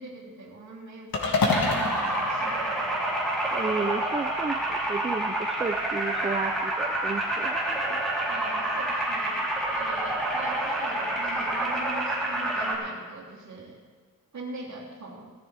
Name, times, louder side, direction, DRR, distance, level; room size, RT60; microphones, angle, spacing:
voice 1, 0.0-2.9 7.3-7.4 8.3-9.4 9.7-13.8 14.3-15.3, right 2 dB, 55° right, -3 dB, 3.2 m, -41 dB
sound 1, 1.1-3.5, left 3 dB, 85° left, 2.2 m, -28 dB
sound 2, 1.5-12.7, right 1 dB, ahead, 3.5 m, -28 dB
voice 2, 3.5-8.0, right 4 dB, 20° right, 7 dB, 0.4 m, -33 dB
18.5 x 14.0 x 3.4 m, 1.5 s
wide cardioid pair, 155°, 35 cm